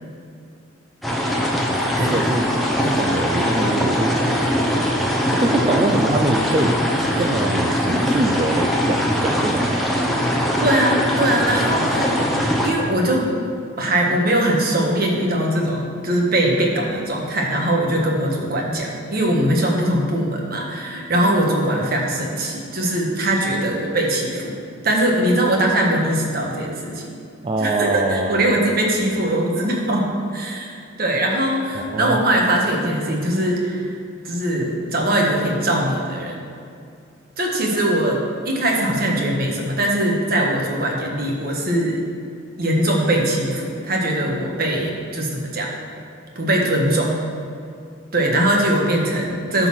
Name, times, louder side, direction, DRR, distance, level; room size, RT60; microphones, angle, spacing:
sound 1, 1.0-12.7, equal, ahead, 0.9 m, -21 dB
voice 1, 1.7-2.5 2.8-4.2 5.3-6.7 7.0-9.8 27.4-28.5 31.8-32.2, right 2 dB, 25° right, 1 dB, 0.4 m, -24 dB
voice 2, 10.6-12.2 12.6-13.3 13.8-24.5 24.8-27.2 27.6-33.9 34.2-36.4 37.4-42.0 42.6-45.7 46.3-47.2 48.1-49.7, right 1 dB, 50° right, -1 dB, 1.4 m, -21 dB
12.0 x 4.0 x 6.1 m, 2.4 s
head